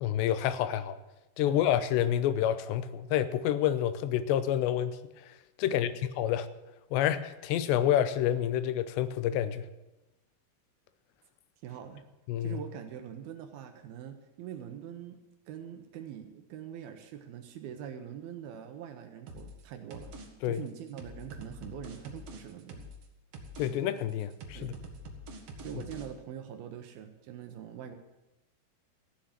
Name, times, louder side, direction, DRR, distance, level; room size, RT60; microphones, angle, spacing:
voice 1, 0.0-1.0 1.4-5.0 5.6-6.5 6.9-9.6 12.3-12.6 20.4-20.6 23.6-24.7, left 11 dB, 85° left, 13 dB, 2.9 m, -28 dB
voice 2, 5.6-6.0 11.6-12.1 12.4-15.2 15.5-20.1 20.4-22.9 24.5-24.8 25.6-28.0, right 9 dB, 75° right, 7 dB, 2.5 m, -43 dB
sound 1, 19.3-19.6 19.9-20.3 20.6-23.0 23.3-23.7 24.0-26.1, equal, 55° right, 1.8 m, -45 dB
15.0 x 7.6 x 8.9 m, 1.0 s
omnidirectional pair, 5.0 m